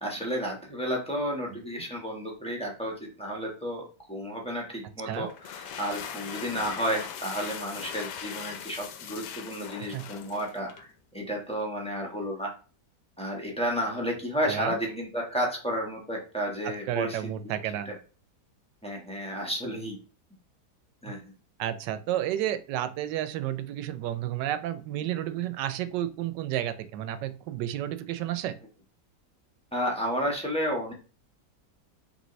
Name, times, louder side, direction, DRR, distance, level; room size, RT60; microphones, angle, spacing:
voice 1, 0.0-12.5 13.2-17.5 17.8-17.9 18.8-20.0 21.0-21.2 29.7-30.9, equal, 5° left, -2 dB, 1.1 m, -32 dB
sound 1, 5.3-10.9, left 8 dB, 80° left, 1.2 m, -40 dB
voice 2, 16.6-17.9 21.6-28.5, right 12 dB, 90° right, 13 dB, 1.2 m, -31 dB
5.3 x 3.0 x 3.1 m, 0.36 s
omnidirectional pair, 1.8 m